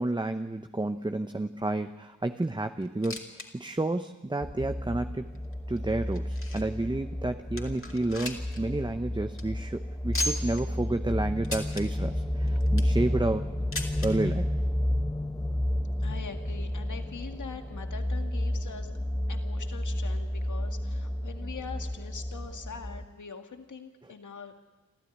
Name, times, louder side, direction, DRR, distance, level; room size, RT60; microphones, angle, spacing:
voice 1, 0.0-5.3 5.7-13.5 14.0-14.6, right 2 dB, 15° right, 8 dB, 0.9 m, -30 dB
sound 1, 2.8-3.5 3.8-3.9 4.5-4.6 5.3-6.8 7.2-7.3 7.6-8.6 8.9-9.0 9.3-9.4 10.1-10.6 11.4-11.8 12.5-13.0 13.7-14.1 15.1-15.2 15.4-15.5 16.3-16.4, left 1 dB, 45° left, 3.3 m, -35 dB
sound 2, 4.4-23.0, left 1 dB, 10° left, 1.1 m, -31 dB
voice 2, 16.0-18.9 19.3-24.6, left 5 dB, 80° left, 5 dB, 2.1 m, -43 dB
27.0 x 14.0 x 9.9 m, 1.1 s
wide cardioid pair, 70°, 30 cm